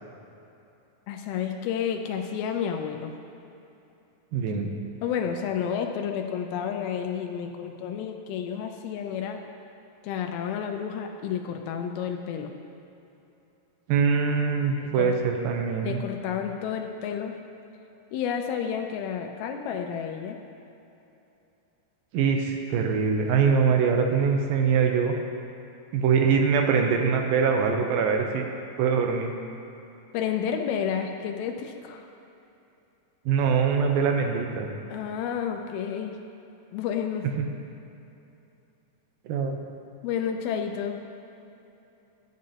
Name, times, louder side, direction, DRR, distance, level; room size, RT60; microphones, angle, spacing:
voice 1, 1.1-3.1 4.5-4.7 5.0-9.4 10.0-12.5 14.9-15.1 15.8-17.3 18.1-20.4 30.1-32.1 34.9-36.1 36.7-37.2 40.0-41.0, left 8 dB, 90° left, 4 dB, 2.5 m, -30 dB
voice 2, 4.3-4.7 13.9-16.0 22.1-25.1 25.9-28.4 28.8-29.3 33.3-34.7 37.4-37.5 39.3-39.6, right 6 dB, 80° right, 3 dB, 2.4 m, -23 dB
13.0 x 7.4 x 2.8 m, 2.9 s
omnidirectional pair, 4.3 m